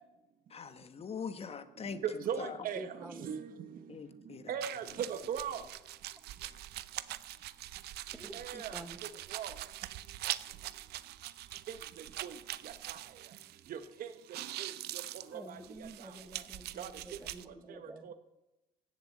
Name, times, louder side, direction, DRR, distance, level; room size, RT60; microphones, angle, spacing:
voice 1, 0.5-2.0 2.4-2.5 3.9-4.4, left 6 dB, 35° left, 10 dB, 1.2 m, -42 dB
voice 2, 1.9-3.8 4.4-5.6 8.3-9.5 11.7-12.4 12.6-13.0 13.7-16.1 16.8-17.2 17.7-18.1, right 8 dB, 55° right, 10 dB, 1.0 m, -40 dB
voice 3, 2.7-3.3 8.1-9.0 15.3-18.1, right 1 dB, 5° right, 9 dB, 0.9 m, -49 dB
sound 1, 4.6-13.9 14.1-17.4, right 15 dB, 75° right, 0.6 m, -43 dB
16.0 x 7.5 x 7.6 m, 0.98 s
cardioid pair, 110°, 17 cm